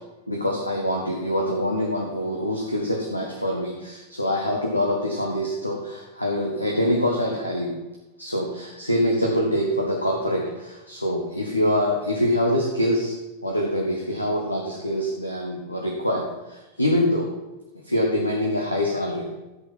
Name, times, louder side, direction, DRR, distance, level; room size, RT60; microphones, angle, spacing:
voice 1, 0.3-7.7 8.2-13.1 13.4-17.3 17.8-19.3, equal, 85° left, -1 dB, 1.7 m, -25 dB
12.0 x 8.0 x 5.8 m, 1.0 s
figure-of-eight pair, 90°, 0 cm